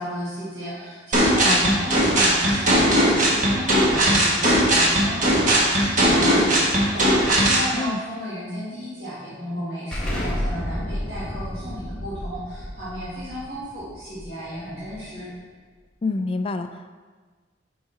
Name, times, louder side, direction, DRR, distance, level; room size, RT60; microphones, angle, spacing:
voice 1, 0.0-15.3, equal, 60° right, -10 dB, 1.9 m, -34 dB
sound 1, 1.1-7.7, right 1 dB, 45° right, 1.2 m, -18 dB
Explosion, 9.9-15.3, equal, 5° left, 1.1 m, -31 dB
voice 2, 16.0-16.9, left 3 dB, 30° left, 8 dB, 0.3 m, -27 dB
6.4 x 4.8 x 4.1 m, 1.4 s
head